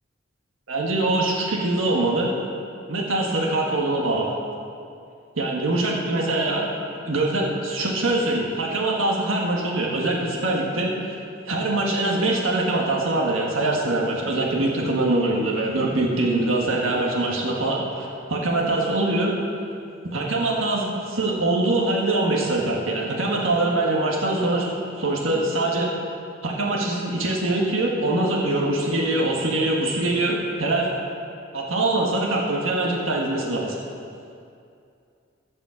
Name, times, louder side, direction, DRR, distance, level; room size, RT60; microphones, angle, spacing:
voice 1, 0.7-2.3 2.9-4.4 5.3-6.7 7.0-11.2 11.4-19.4 20.0-25.9 26.4-30.9 31.5-33.8, right 2 dB, 90° right, -2 dB, 1.6 m, -23 dB
14.5 x 5.4 x 7.2 m, 2.5 s
head